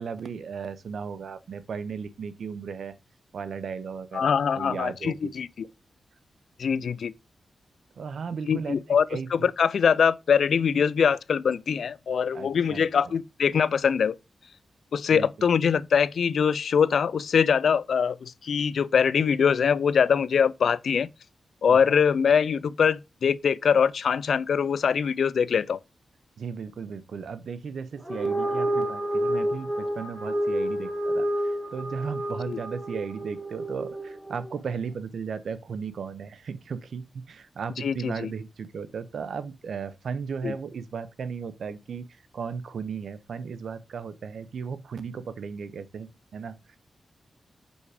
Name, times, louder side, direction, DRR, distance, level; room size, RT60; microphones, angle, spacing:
voice 1, 0.0-3.0 3.3-5.2 8.0-9.3 12.3-13.1 15.1-15.5 21.7-21.8 26.4-46.8, right 6 dB, 80° right, 0.8 m, -36 dB
voice 2, 4.1-5.5 6.6-7.1 8.5-14.2 14.9-21.1 21.6-25.8 32.5-32.6 37.8-38.3 40.4-40.5, left 7 dB, 75° left, 0.3 m, -23 dB
sound 1, 28.0-34.6, right 1 dB, 5° right, 2.0 m, -29 dB
5.3 x 4.8 x 4.8 m
wide cardioid pair, 90°, 0 cm